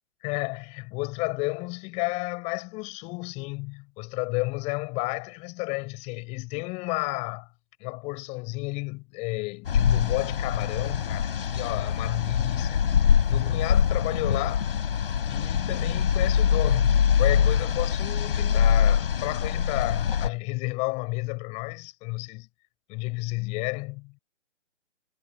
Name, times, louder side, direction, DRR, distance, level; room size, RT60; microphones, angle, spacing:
voice 1, 0.2-7.5 7.8-12.8 13.3-14.7 15.3-22.5 22.9-24.1, left 27 dB, 15° left, 6.9 m, -32 dB
sound 1, 9.6-20.3, left 8 dB, 50° left, 7.3 m, -24 dB
hypercardioid pair, 160°, 37 cm